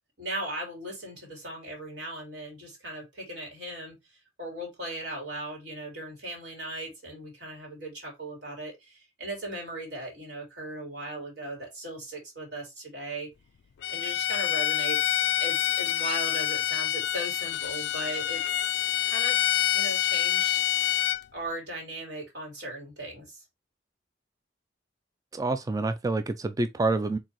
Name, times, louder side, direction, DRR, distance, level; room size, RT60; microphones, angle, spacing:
voice 1, 0.2-3.9 4.4-13.3 13.9-18.7 19.0-20.6 21.3-23.4, right 1 dB, 65° right, 3.1 m, -38 dB
Bowed string instrument, 13.8-21.2, left 12 dB, 65° left, 0.3 m, -27 dB
voice 2, 25.3-27.2, right 2 dB, 20° right, 0.3 m, -27 dB
4.7 x 3.8 x 2.9 m
head